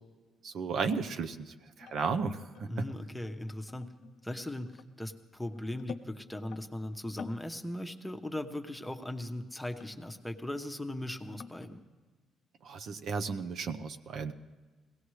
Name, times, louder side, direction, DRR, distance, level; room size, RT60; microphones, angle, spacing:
voice 1, 0.4-2.7 12.6-14.3, right 5 dB, 65° right, 8 dB, 0.7 m, -34 dB
sound 1, 1.8-6.6 7.0-7.5 7.8-8.1 8.4-8.5 9.5-10.7 10.9-11.7, left 6 dB, 70° left, 0.6 m, -49 dB
voice 2, 2.7-3.9 4.2-11.8, left 1 dB, 5° left, 5 dB, 0.9 m, -38 dB
21.0 x 17.0 x 3.2 m, 1.3 s
cardioid pair, 100°, 0 cm